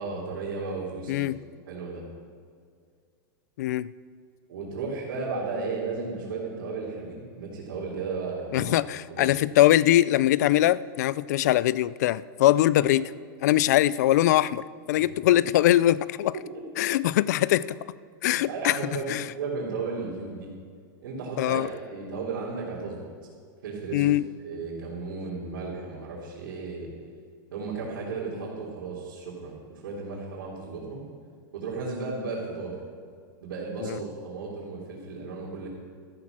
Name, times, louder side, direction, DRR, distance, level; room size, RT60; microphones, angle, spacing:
voice 1, 0.0-1.3 1.7-2.0 4.5-8.8 9.1-9.3 12.8-12.9 15.0-15.1 16.3-16.6 18.4-19.1 19.4-20.5 21.0-21.6 21.9-23.1 23.6-24.0 24.4-26.9 27.5-31.0 31.5-32.7 33.4-35.7, right 4 dB, 80° right, -6 dB, 3.5 m, -34 dB
voice 2, 1.1-1.4 3.6-3.9 8.5-13.1 13.4-16.3 16.8-17.8 18.2-18.8 19.1-19.2 21.4-21.7 23.9-24.2 33.8-34.0, left 14 dB, 55° left, 20 dB, 0.4 m, -22 dB
13.5 x 10.5 x 6.1 m, 2.1 s
supercardioid pair, 175°, 11 cm